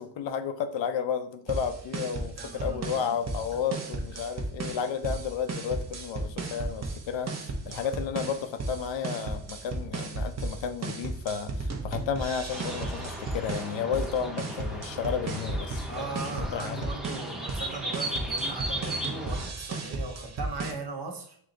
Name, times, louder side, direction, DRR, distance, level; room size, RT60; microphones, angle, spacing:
voice 1, 0.0-16.9, left 7 dB, 80° left, 9 dB, 0.6 m, -32 dB
sound 1, 1.5-20.7, right 3 dB, 35° right, 0.7 m, -35 dB
voice 2, 2.4-3.2 4.1-4.2 7.6-7.9 15.9-21.4, right 3 dB, 60° right, 3 dB, 1.0 m, -39 dB
sound 2, 12.5-19.5, right 1 dB, ahead, 0.7 m, -36 dB
5.8 x 2.0 x 3.7 m, 0.62 s
cardioid pair, 95°, 44 cm